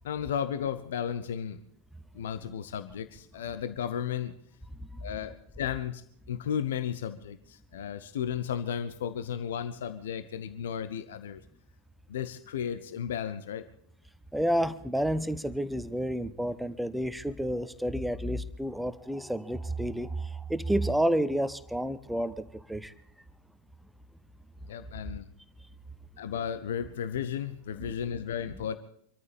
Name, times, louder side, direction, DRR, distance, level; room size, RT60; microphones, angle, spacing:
voice 1, 0.0-1.6 2.1-4.3 5.0-11.4 12.1-13.7 24.7-25.3 26.2-28.8, left 8 dB, 60° left, 12 dB, 1.0 m, -34 dB
voice 2, 14.3-22.4 22.7-22.9 27.8-27.9, right 1 dB, ahead, 15 dB, 1.0 m, -30 dB
25.5 x 13.5 x 3.5 m, 0.66 s
figure-of-eight pair, 90°, 0 cm